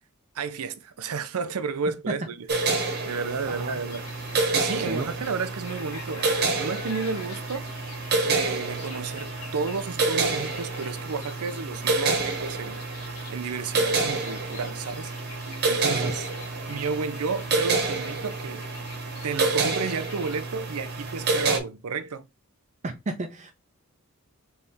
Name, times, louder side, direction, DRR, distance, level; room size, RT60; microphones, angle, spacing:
voice 1, 0.3-4.0 4.5-7.7 8.2-15.1 15.4-16.3 16.7-18.7 19.2-22.3, right 5 dB, 80° right, 0.6 m, -32 dB
sound 1, 2.5-21.6, right 3 dB, 50° right, 1.1 m, -28 dB
voice 2, 3.5-3.8 4.9-5.1 15.8-16.1 22.8-23.5, right 2 dB, 35° right, 0.5 m, -32 dB
sound 2, 3.9-20.4, left 5 dB, 85° left, 1.3 m, -47 dB
4.1 x 3.3 x 3.5 m
head